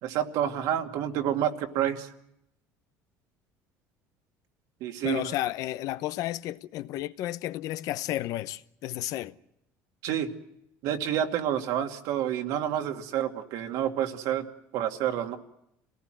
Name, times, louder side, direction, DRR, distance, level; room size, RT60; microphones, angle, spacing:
voice 1, 0.0-2.1 4.8-5.3 10.0-10.3 10.8-14.5 14.7-15.4, right 10 dB, 70° right, 2.3 m, -29 dB
voice 2, 5.0-9.3, left 14 dB, 65° left, 0.9 m, -32 dB
28.0 x 18.5 x 7.7 m
cardioid pair, 125°, 6 cm